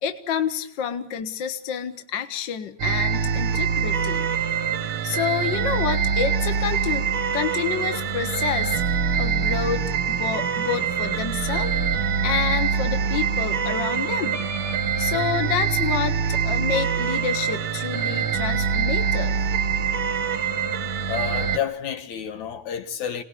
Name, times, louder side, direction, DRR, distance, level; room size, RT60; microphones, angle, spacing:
voice 1, 0.0-4.3 5.0-7.1 7.3-8.8 9.2-11.7 12.2-14.4 15.0-19.4, left 8 dB, 45° left, 1.8 m, -28 dB
sound 1, 2.8-21.6, right 6 dB, 55° right, 1.7 m, -24 dB
voice 2, 21.1-23.2, left 8 dB, 70° left, 2.8 m, -30 dB
27.0 x 19.0 x 8.4 m
omnidirectional pair, 3.4 m